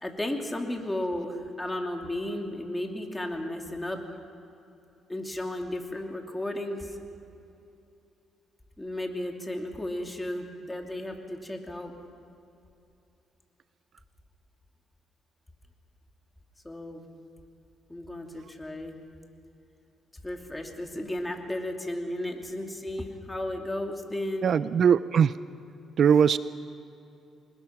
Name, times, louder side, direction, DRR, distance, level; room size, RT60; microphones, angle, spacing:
voice 1, 0.0-4.0 5.1-6.9 8.8-11.9 16.6-17.0 17.9-19.0 20.2-24.5, left 1 dB, 10° left, 2 dB, 2.8 m, -34 dB
voice 2, 24.4-25.3 26.0-26.4, right 7 dB, 55° right, 16 dB, 0.4 m, -20 dB
25.0 x 21.0 x 6.0 m, 2.7 s
cardioid pair, 90°, 0 cm